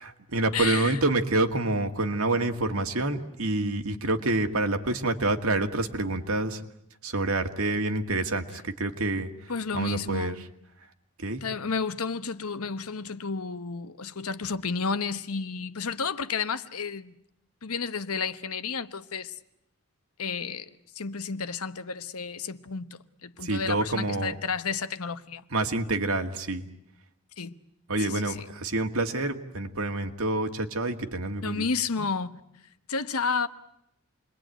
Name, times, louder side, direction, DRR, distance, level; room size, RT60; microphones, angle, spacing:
voice 1, 0.0-6.6 7.0-9.3 9.7-10.3 11.2-11.4 23.4-24.3 25.5-26.6 27.9-31.6, right 2 dB, 75° right, 2.0 m, -27 dB
voice 2, 0.5-1.0 9.5-10.5 11.4-17.1 17.6-19.3 20.2-20.7 20.9-25.4 27.4-27.5 28.0-28.5 31.4-32.4 32.9-33.5, left 5 dB, 85° left, 1.1 m, -31 dB
28.5 x 21.5 x 9.2 m
head